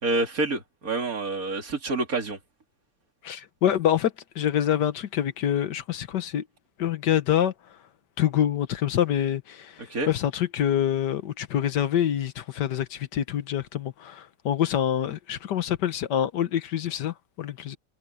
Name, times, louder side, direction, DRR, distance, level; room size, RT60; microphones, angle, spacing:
voice 1, 0.0-2.4 9.9-10.1, right 2 dB, 55° right, 3.5 m, -27 dB
voice 2, 3.2-6.4 6.8-7.5 8.2-17.8, left 10 dB, 80° left, 1.7 m, -26 dB
omnidirectional pair, 1.8 m